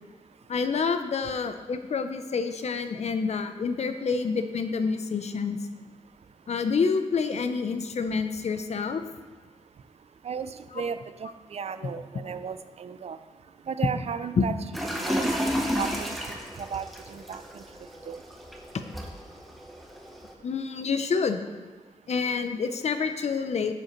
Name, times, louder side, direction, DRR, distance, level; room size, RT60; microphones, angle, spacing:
voice 1, 0.5-5.6 6.5-9.0 14.4-14.5 20.4-21.4 22.1-23.7, left 5 dB, 55° left, 8 dB, 0.5 m, -28 dB
voice 2, 10.2-13.2 13.7-14.5 14.9-15.3 15.6-16.2 16.6-17.6 18.1-18.2, right 6 dB, 55° right, 11 dB, 0.4 m, -35 dB
sound 1, 14.7-20.3, equal, ahead, 0.8 m, -32 dB
9.3 x 7.6 x 3.0 m, 1.4 s
wide cardioid pair, 175°, 13 cm